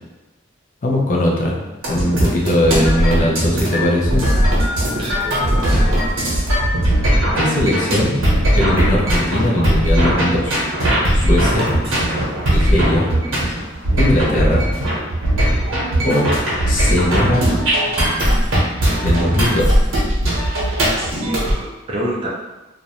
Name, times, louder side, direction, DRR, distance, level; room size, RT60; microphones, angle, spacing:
voice 1, 0.8-1.6 1.8-4.2 7.3-8.2 8.6-10.7 11.1-11.7 12.5-13.1 14.0-14.6 16.0-16.3 16.7-17.5 19.0-19.8, left 1 dB, 40° left, -2 dB, 0.5 m, -19 dB
sound 1, 1.8-21.5, equal, 80° right, 0.8 m, -18 dB
voice 2, 5.0-6.0 21.2-22.3, right 1 dB, 30° right, -4 dB, 0.3 m, -28 dB
2.4 x 2.0 x 2.8 m, 1.1 s
head